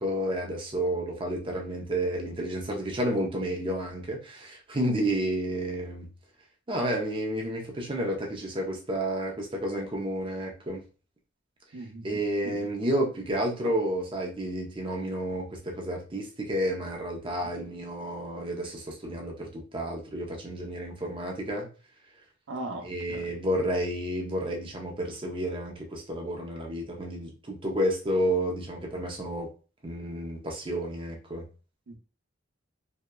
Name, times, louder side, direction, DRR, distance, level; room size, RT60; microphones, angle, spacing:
voice 1, 0.0-6.1 6.7-10.8 12.0-21.7 22.8-29.5 29.8-31.5, right 1 dB, 25° right, 0 dB, 0.6 m, -31 dB
voice 2, 11.7-12.6 13.6-13.7 22.5-23.4 31.9-32.0, right 2 dB, 80° right, 1 dB, 0.6 m, -39 dB
2.7 x 2.2 x 2.2 m, 0.35 s
head